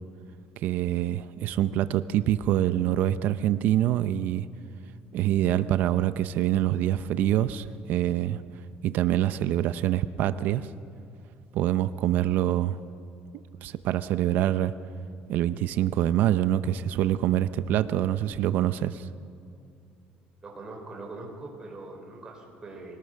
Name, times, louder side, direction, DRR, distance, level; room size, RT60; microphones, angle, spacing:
voice 1, 0.6-4.5 5.1-8.4 8.8-10.7 11.5-12.8 13.6-14.7 15.3-19.1, right 12 dB, 60° right, 13 dB, 0.6 m, -25 dB
voice 2, 20.4-23.0, right 2 dB, 20° right, 0 dB, 4.5 m, -42 dB
24.5 x 18.5 x 6.6 m, 2.5 s
cardioid pair, 160°, 3 cm